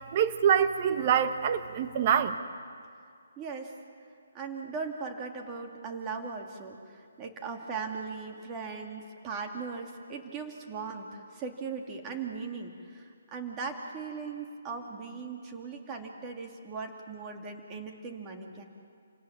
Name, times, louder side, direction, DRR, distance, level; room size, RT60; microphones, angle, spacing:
voice 1, 0.1-2.4, right 8 dB, 35° right, 9 dB, 1.3 m, -25 dB
voice 2, 3.4-3.8 4.3-18.6, right 5 dB, 20° right, 2 dB, 2.7 m, -39 dB
29.5 x 18.0 x 7.5 m, 2.2 s
hypercardioid pair, 150°, 0 cm